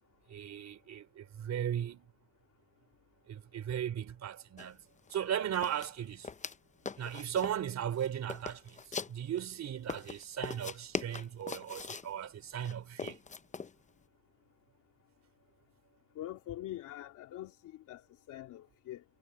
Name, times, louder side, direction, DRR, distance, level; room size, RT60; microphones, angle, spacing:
voice 1, 0.3-2.1 3.3-4.8 5.1-6.3 6.9-13.2, right 9 dB, 65° right, 3.1 m, -37 dB
sound 1, 4.6-4.7 5.0-5.2 5.5-6.6 6.9-7.6 8.0-9.4 9.9-12.1 12.6-13.7, left 5 dB, 25° left, 0.7 m, -41 dB
voice 2, 16.1-19.0, left 13 dB, 90° left, 2.6 m, -44 dB
cardioid pair, 90°, 30 cm